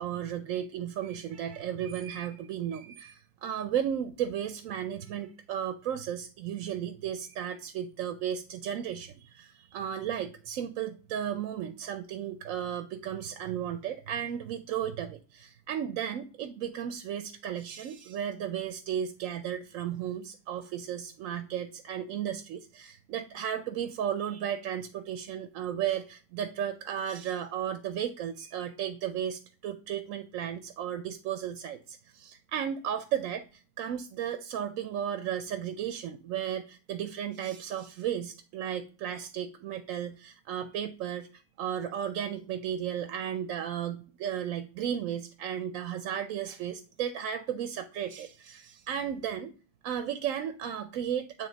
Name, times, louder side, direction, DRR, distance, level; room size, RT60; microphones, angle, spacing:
voice 1, 0.0-49.5 49.8-51.5, right 9 dB, 90° right, 9 dB, 1.0 m, -34 dB
8.7 x 3.4 x 3.9 m, 0.37 s
omnidirectional pair, 1.4 m